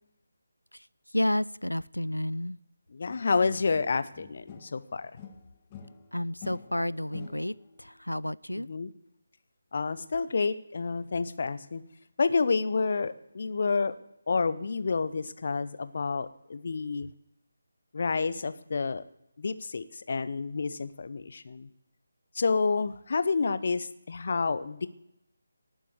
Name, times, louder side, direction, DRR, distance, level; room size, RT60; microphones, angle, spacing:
voice 1, 1.1-2.6 6.1-8.7, left 1 dB, 90° left, 20 dB, 0.5 m, -31 dB
voice 2, 2.9-5.1 8.7-8.9 9.7-11.8 12.2-13.9 14.3-17.1 17.9-19.0 19.4-21.7 22.3-24.9, left 4 dB, 45° left, 14 dB, 0.9 m, -29 dB
sound 1, 3.1-4.8 5.2-7.8, left 7 dB, 20° left, 1.5 m, -48 dB
19.0 x 7.6 x 8.1 m, 0.84 s
figure-of-eight pair, 155°, 0 cm